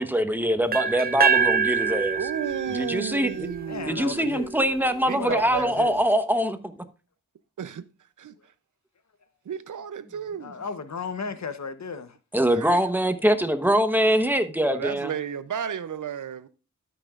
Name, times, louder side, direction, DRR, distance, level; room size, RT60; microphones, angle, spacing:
voice 1, 0.0-2.2 2.7-3.5 3.9-6.8 12.3-15.1, equal, 5° right, 1.0 m, -23 dB
sound 1, 0.7-4.6, right 5 dB, 30° right, 0.4 m, -26 dB
voice 2, 2.2-4.3 5.1-5.7 7.6-7.9 8.2-8.3 9.5-10.5 12.5-12.8 14.6-16.5, right 8 dB, 75° right, 0.6 m, -33 dB
voice 3, 3.7-4.5 5.1-6.0 10.4-12.2, left 5 dB, 60° left, 0.9 m, -34 dB
13.0 x 6.0 x 2.4 m
cardioid pair, 55°, 31 cm